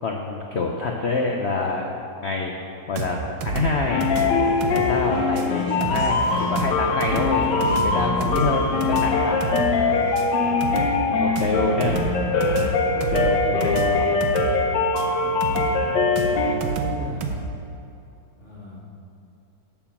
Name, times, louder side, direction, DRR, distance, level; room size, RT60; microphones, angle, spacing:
voice 1, 0.0-1.9 2.2-2.5 2.9-3.2 3.5-4.1 4.7-9.4 10.7-12.0 12.9-13.4 13.6-14.0, left 3 dB, 85° left, 1 dB, 0.5 m, -26 dB
sound 1, 3.0-17.4, right 4 dB, 70° right, 1.5 m, -30 dB
Conversation / Chatter, 3.6-10.3, equal, 45° right, 2.6 m, -37 dB
sound 2, 3.9-16.5, left 4 dB, 70° left, 1.5 m, -22 dB
voice 2, 8.4-9.1 9.7-10.0 10.3-10.7 11.4-13.7 14.9-17.3 18.4-18.8, equal, 35° left, -6 dB, 2.3 m, -36 dB
11.0 x 4.6 x 7.1 m, 2.7 s
omnidirectional pair, 2.1 m